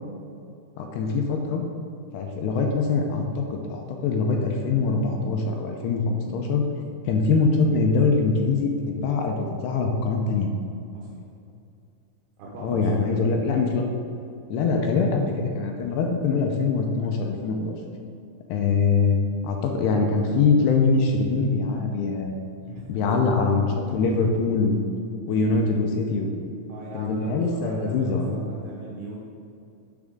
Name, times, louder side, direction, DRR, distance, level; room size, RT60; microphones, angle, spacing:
voice 1, 0.8-1.6 2.1-6.6 7.1-10.5 12.6-13.8 14.5-17.8 18.5-19.2 19.4-22.5 22.9-24.9 25.3-26.3 26.9-28.4, left 4 dB, 90° left, 2 dB, 2.9 m, -23 dB
voice 2, 12.4-13.4 22.7-22.9 26.7-29.2, right 2 dB, 75° right, -4 dB, 3.0 m, -39 dB
10.5 x 6.3 x 3.7 m, 2.6 s
omnidirectional pair, 4.7 m